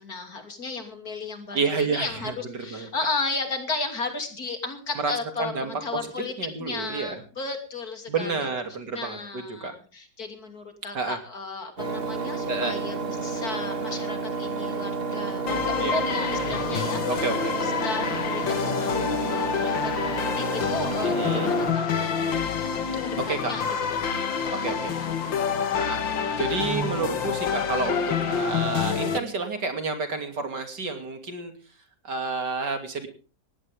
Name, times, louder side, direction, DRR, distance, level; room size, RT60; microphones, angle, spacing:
voice 1, 0.0-6.3 6.6-8.4 8.9-21.9 23.0-24.7 28.7-29.4, left 3 dB, 50° left, 6 dB, 3.3 m, -34 dB
voice 2, 1.5-2.9 5.0-6.0 6.4-7.2 8.1-9.7 10.9-11.2 12.5-12.8 15.8-16.0 17.1-17.6 21.0-21.5 23.2-23.5 24.5-25.0 25.8-26.0 26.4-31.5 32.0-33.1, right 4 dB, 65° right, 6 dB, 3.3 m, -30 dB
Engine, 11.8-21.7, right 4 dB, 30° right, 1.9 m, -31 dB
sound 1, 15.5-29.2, left 6 dB, 85° left, 2.2 m, -27 dB
19.0 x 16.0 x 3.6 m, 0.37 s
omnidirectional pair, 2.0 m